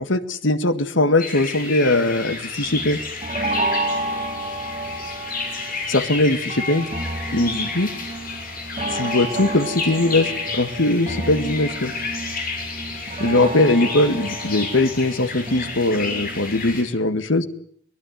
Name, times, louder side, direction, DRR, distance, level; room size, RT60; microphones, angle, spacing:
voice 1, 0.0-3.0 5.9-6.9 7.3-7.9 8.9-11.9 13.2-17.5, left 2 dB, 80° left, 11 dB, 1.8 m, -20 dB
sound 1, 1.2-16.8, left 4 dB, 50° left, 6.9 m, -31 dB
sound 2, 2.6-16.8, right 2 dB, 35° right, 4.9 m, -31 dB
23.5 x 20.5 x 9.4 m, 0.63 s
head